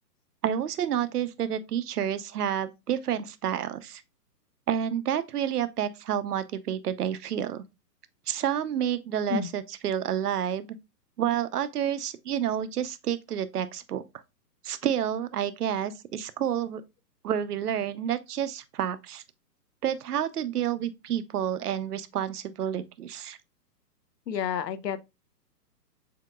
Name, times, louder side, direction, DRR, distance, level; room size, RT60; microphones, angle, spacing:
voice 1, 0.4-4.0 4.7-7.6 8.3-10.7 11.2-14.0 14.6-16.8 17.2-19.2 19.8-23.4, right 9 dB, 65° right, 0.7 m, -29 dB
voice 2, 24.3-25.0, left 8 dB, 80° left, 0.8 m, -30 dB
7.6 x 2.9 x 2.2 m
hypercardioid pair, 155°, 49 cm